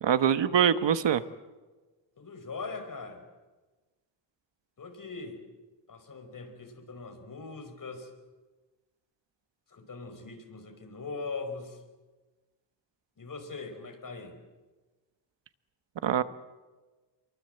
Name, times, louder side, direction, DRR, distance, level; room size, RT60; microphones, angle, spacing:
voice 1, 0.0-1.2 16.0-16.2, right 8 dB, 75° right, 12 dB, 1.3 m, -24 dB
voice 2, 2.2-3.2 4.8-5.4 5.9-8.1 9.7-11.8 13.2-14.4, left 4 dB, 45° left, 5 dB, 5.3 m, -41 dB
28.5 x 23.0 x 8.0 m, 1.2 s
wide cardioid pair, 120°, 43 cm